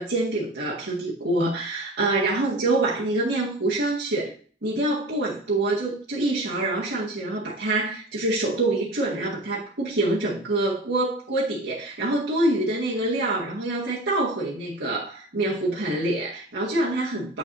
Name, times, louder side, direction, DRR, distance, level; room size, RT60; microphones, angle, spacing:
voice 1, 0.0-4.3 4.6-17.4, right 2 dB, 90° right, -7 dB, 1.9 m, -26 dB
7.8 x 7.0 x 2.7 m, 0.42 s
head